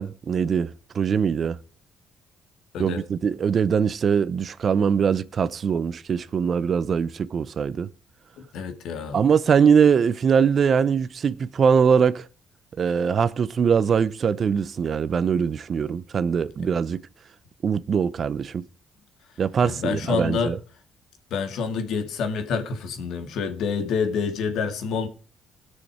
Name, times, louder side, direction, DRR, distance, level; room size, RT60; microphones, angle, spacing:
voice 1, 0.0-1.6 2.8-7.9 9.1-12.2 12.8-17.0 17.6-18.6 19.4-20.6, right 6 dB, 50° right, 0.7 m, -22 dB
voice 2, 8.5-9.2 19.6-20.5 21.3-25.1, left 5 dB, 80° left, 2.0 m, -27 dB
19.5 x 6.5 x 4.9 m
cardioid pair, 90°, 0 cm